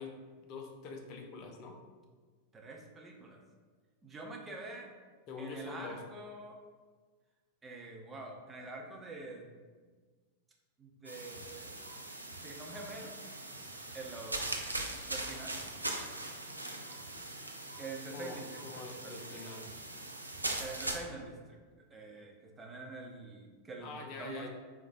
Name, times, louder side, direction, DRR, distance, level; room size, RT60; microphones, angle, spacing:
voice 1, 0.0-1.8 5.3-6.0 18.1-19.7 23.8-24.5, left 4 dB, 40° left, 2 dB, 0.7 m, -45 dB
voice 2, 2.5-3.4 4.0-4.9 5.4-6.6 7.6-9.5 10.8-11.8 12.4-13.1 13.9-14.5 15.1-15.6 17.8-19.5 20.6-24.5, right 3 dB, 15° right, 0 dB, 0.7 m, -46 dB
sound 1, 11.0-21.0, right 2 dB, 85° right, 0.5 m, -41 dB
4.8 x 3.6 x 2.6 m, 1.5 s
figure-of-eight pair, 90°, 0 cm